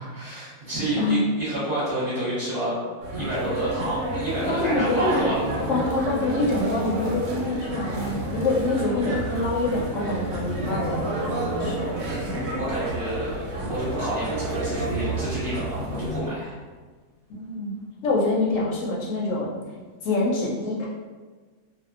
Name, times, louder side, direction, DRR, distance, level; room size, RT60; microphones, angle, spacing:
voice 1, 0.0-2.8 3.1-5.4 11.9-13.3 13.7-16.5, right 1 dB, 45° right, -11 dB, 0.9 m, -29 dB
sound 1, 3.0-16.2, right 1 dB, 90° right, 1.2 m, -29 dB
voice 2, 4.5-5.3 5.7-12.0 17.3-17.7 18.0-19.6 20.0-20.9, left 2 dB, 65° left, -4 dB, 0.8 m, -26 dB
2.6 x 2.2 x 2.4 m, 1.4 s
omnidirectional pair, 1.7 m